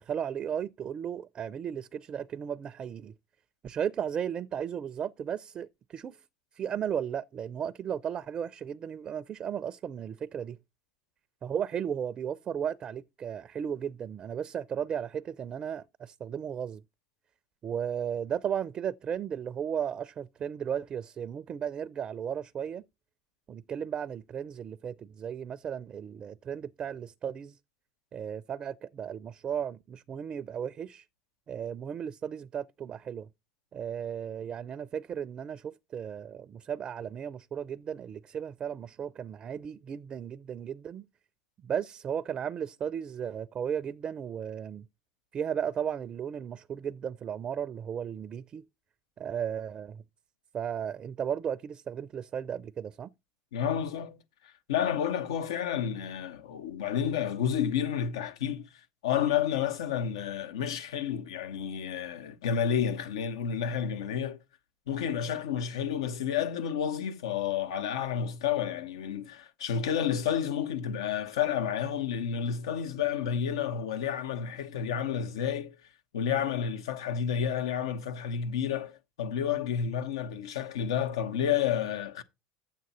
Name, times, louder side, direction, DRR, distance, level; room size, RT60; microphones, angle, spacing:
voice 1, 0.0-3.1 3.6-6.2 6.6-10.6 11.4-16.8 17.6-22.8 23.5-27.6 28.1-31.0 31.5-33.3 33.7-41.0 41.6-44.9 45.3-48.6 49.2-50.0 50.5-53.1, right 8 dB, 35° right, 0.5 m, -35 dB
voice 2, 53.5-54.2 54.7-58.7 59.0-64.4 64.9-75.7 76.1-82.2, left 8 dB, 90° left, 1.1 m, -30 dB
9.1 x 7.6 x 4.2 m
supercardioid pair, 95°, 3 cm